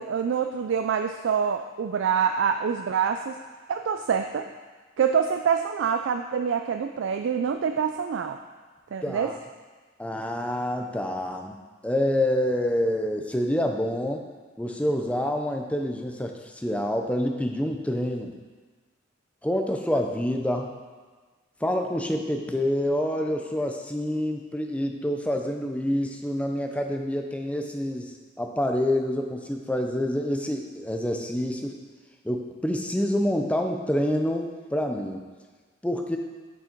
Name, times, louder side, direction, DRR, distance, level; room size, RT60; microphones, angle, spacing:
voice 1, 0.0-3.4 3.7-4.5 5.0-8.4 8.9-9.3, right 7 dB, 70° right, 6 dB, 0.3 m, -26 dB
voice 2, 9.0-9.4 10.0-11.6 11.8-14.2 14.6-18.3 19.4-20.7 21.6-31.8 32.2-35.2 35.8-36.2, left 1 dB, 5° left, 3 dB, 0.5 m, -27 dB
7.0 x 6.1 x 4.4 m, 1.4 s
head